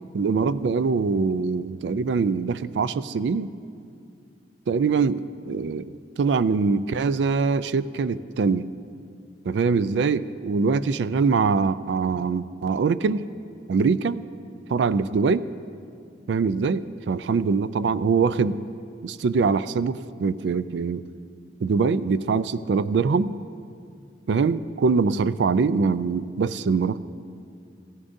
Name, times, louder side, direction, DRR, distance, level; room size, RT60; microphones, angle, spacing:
voice 1, 0.1-3.5 4.7-8.7 9.5-13.3 13.7-14.2 14.7-15.5 16.3-18.6 19.0-21.0 21.6-23.3 24.3-27.0, right 5 dB, 85° right, 15 dB, 0.4 m, -23 dB
15.5 x 14.5 x 2.7 m, 2.4 s
head